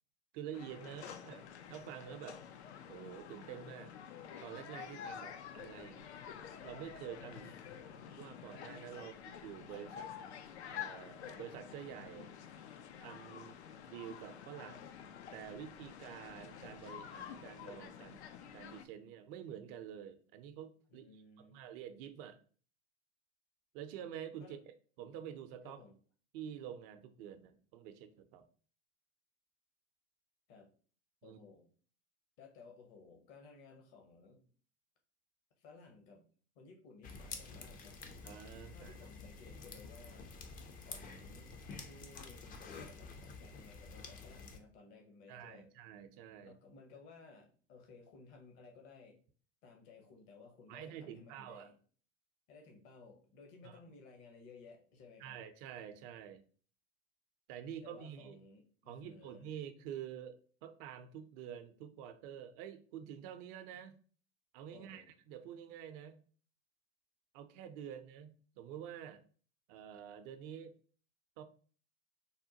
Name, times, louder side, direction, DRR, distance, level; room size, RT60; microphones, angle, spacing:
voice 1, 0.3-1.4 1.7-2.4 2.9-3.9 4.4-6.1 6.6-7.5 8.1-10.1 10.7-12.3 13.0-13.6 13.9-15.0 15.3-18.2 18.5-21.1 21.4-22.4 23.7-24.6 25.0-25.8 26.3-28.4 31.2-31.4 38.2-39.0 45.3-46.6 50.7-51.7 53.6-53.8 55.2-56.4 57.5-58.4 58.9-64.0 64.5-66.2 67.3-69.2 69.7-70.7 71.4-71.5, right 9 dB, 55° right, 9 dB, 0.5 m, -48 dB
sound 1, 0.5-18.8, left 8 dB, 80° left, 0.5 m, -49 dB
voice 2, 7.3-8.0 8.4-8.5 9.0-9.2 20.9-21.6 24.4-24.6 25.6-25.9 30.5-30.7 31.2-31.7 32.4-34.5 35.6-36.3 36.5-38.0 38.7-40.3 40.8-41.5 41.8-45.7 46.4-49.2 49.6-51.7 52.5-55.4 57.6-59.5 64.7-65.1, left 4 dB, 50° left, 3 dB, 0.8 m, -58 dB
sound 2, 37.0-44.6, left 4 dB, 25° left, 0.4 m, -49 dB
3.5 x 2.1 x 2.7 m, 0.42 s
hypercardioid pair, 85°, 33 cm